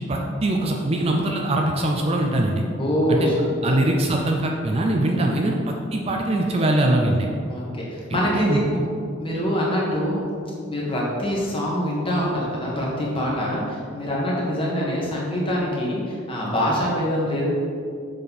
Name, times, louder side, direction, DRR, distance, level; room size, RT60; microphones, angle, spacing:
voice 1, 0.1-2.6 3.1-3.3 3.6-7.3 8.1-8.9, right 1 dB, 30° right, 1 dB, 0.5 m, -22 dB
voice 2, 2.8-3.7 5.1-5.5 7.5-8.6 9.2-10.3 10.7-17.4, equal, 25° left, -4 dB, 1.5 m, -24 dB
6.7 x 5.3 x 4.1 m, 2.3 s
head